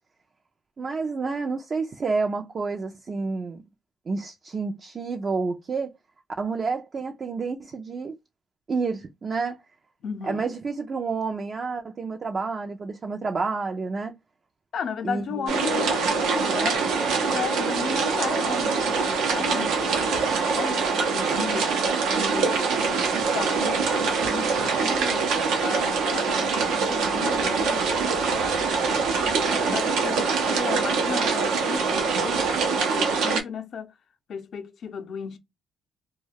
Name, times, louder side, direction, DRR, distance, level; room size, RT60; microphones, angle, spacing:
voice 1, 0.8-3.6 4.1-5.9 6.4-8.1 8.7-9.6 10.2-14.1 15.0-15.4, right 4 dB, 40° right, 0.4 m, -29 dB
voice 2, 10.0-10.5 14.7-21.8 22.1-25.3 25.6-29.0 29.4-33.9 34.3-35.4, left 7 dB, 60° left, 0.6 m, -35 dB
sound 1, 15.5-33.4, right 5 dB, 85° right, 0.6 m, -24 dB
2.3 x 2.2 x 3.3 m
cardioid pair, 90°, 0 cm